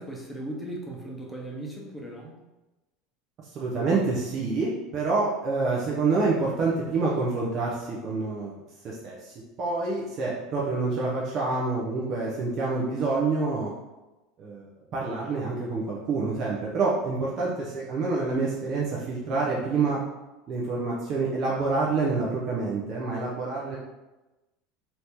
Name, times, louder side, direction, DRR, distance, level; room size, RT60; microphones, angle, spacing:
voice 1, 0.0-2.4, right 1 dB, 10° left, -2 dB, 0.9 m, -37 dB
voice 2, 3.5-8.5 8.8-13.7 14.4-20.0 20.5-23.8, right 3 dB, 45° right, -5 dB, 0.7 m, -27 dB
2.8 x 2.8 x 3.5 m, 1.0 s
hypercardioid pair, 95°, 0 cm